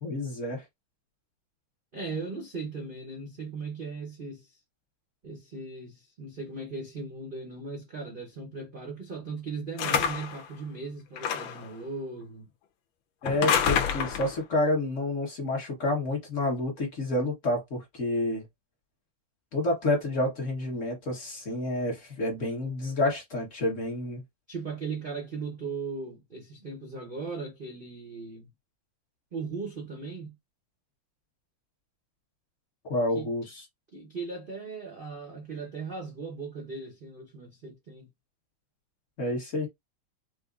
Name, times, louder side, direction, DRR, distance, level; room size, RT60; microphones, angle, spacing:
voice 1, 0.0-0.6 13.2-18.4 19.5-24.2 32.9-33.6 39.2-39.7, left 1 dB, 45° left, 1.3 m, -29 dB
voice 2, 1.9-4.6 5.2-12.5 24.5-28.5 29.3-30.4 33.1-33.3 33.9-38.1, right 4 dB, 65° right, 0.5 m, -38 dB
sound 1, 9.8-10.4 11.2-11.7 13.3-14.4, left 7 dB, 80° left, 1.4 m, -27 dB
5.1 x 2.0 x 2.4 m
omnidirectional pair, 2.2 m